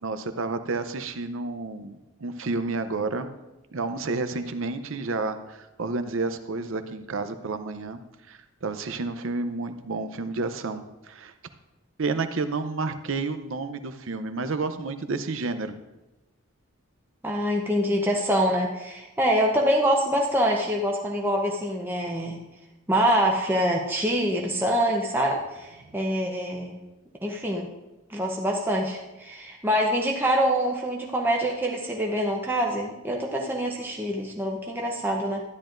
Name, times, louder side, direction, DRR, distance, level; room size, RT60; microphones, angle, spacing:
voice 1, 0.0-3.3 3.7-8.0 8.3-11.3 12.0-15.7, right 3 dB, 60° right, 10 dB, 0.6 m, -30 dB
voice 2, 17.2-22.4 22.9-26.8 27.2-27.7 28.1-35.4, equal, 10° right, -1 dB, 0.7 m, -25 dB
13.0 x 10.5 x 2.5 m, 1.0 s
head